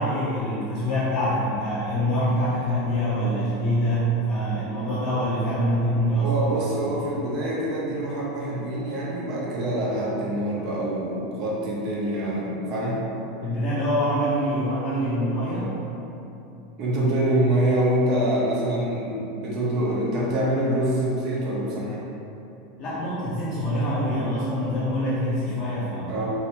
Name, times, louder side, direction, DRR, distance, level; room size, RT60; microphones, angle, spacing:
voice 1, 0.0-6.5 6.8-7.1 13.4-15.7 22.8-26.2, equal, 45° left, -9 dB, 0.7 m, -25 dB
voice 2, 6.2-13.0 16.8-22.1 26.1-26.3, right 1 dB, 50° right, -5 dB, 0.9 m, -25 dB
3.0 x 2.9 x 3.0 m, 2.9 s
hypercardioid pair, 85°, 0 cm